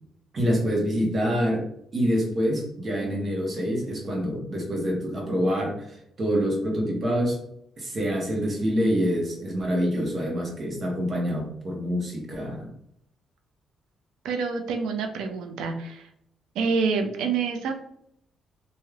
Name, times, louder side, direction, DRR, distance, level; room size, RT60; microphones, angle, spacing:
voice 1, 0.3-7.4 7.8-12.7, equal, 45° right, -1 dB, 1.1 m, -26 dB
voice 2, 14.2-16.1 16.6-17.7, right 5 dB, 90° right, 5 dB, 0.4 m, -27 dB
3.3 x 2.7 x 2.3 m, 0.73 s
cardioid pair, 90°, 0 cm